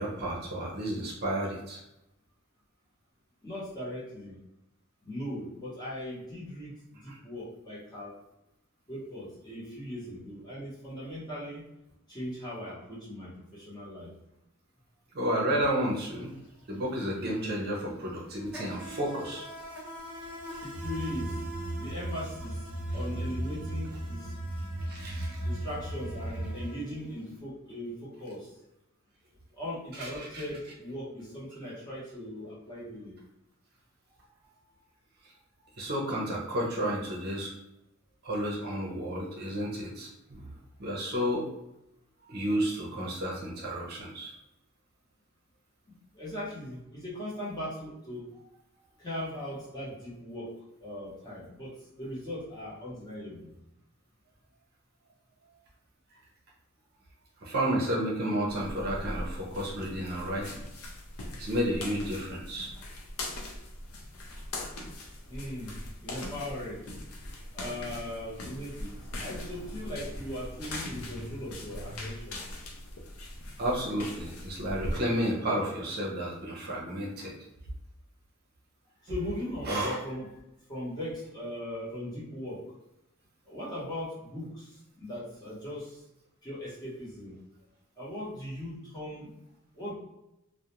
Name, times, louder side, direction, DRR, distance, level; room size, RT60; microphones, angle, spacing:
voice 1, 0.0-1.8 7.1-7.2 15.1-16.3 16.7-19.4 24.9-25.4 29.9-30.4 35.8-37.5 38.2-40.5 40.8-41.5 42.3-44.3 57.4-60.6 61.4-62.7 73.6-77.3 79.7-80.0, equal, 50° right, -3 dB, 0.6 m, -31 dB
voice 2, 3.4-4.4 5.0-8.2 8.9-11.6 12.1-14.1 20.6-21.5 21.7-22.7 22.9-24.3 25.4-28.6 29.5-33.2 46.1-48.2 49.0-50.5 50.8-53.5 65.3-66.8 67.5-72.4 79.0-80.3 80.7-82.6 83.5-86.0 86.4-87.4 88.0-89.3 89.7-89.9, left 1 dB, 20° left, -8 dB, 0.9 m, -39 dB
Insect, 15.8-16.0 16.3-27.3, right 1 dB, 5° right, 0.7 m, -45 dB
sound 1, 20.7-26.7, right 1 dB, 35° left, 1.2 m, -36 dB
sound 2, 58.5-75.0, left 1 dB, 80° left, 0.5 m, -40 dB
2.3 x 2.1 x 2.9 m, 0.88 s
head